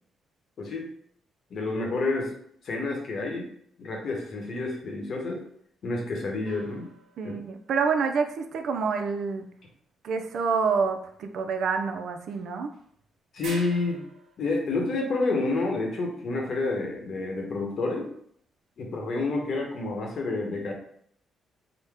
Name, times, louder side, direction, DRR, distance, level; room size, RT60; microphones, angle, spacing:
voice 1, 0.6-0.9 1.5-2.3 2.6-3.5 3.8-5.4 5.8-6.9 13.3-14.0 14.4-18.1 18.8-20.7, left 3 dB, 60° left, 1 dB, 1.0 m, -29 dB
sound 1, 6.4-7.7 12.3-12.4 12.7-12.8 13.4-14.4, right 3 dB, 85° right, 0.8 m, -44 dB
voice 2, 7.2-9.5 10.0-12.7, right 5 dB, 65° right, 6 dB, 0.4 m, -27 dB
3.9 x 2.1 x 3.4 m, 0.65 s
cardioid pair, 90°, 0 cm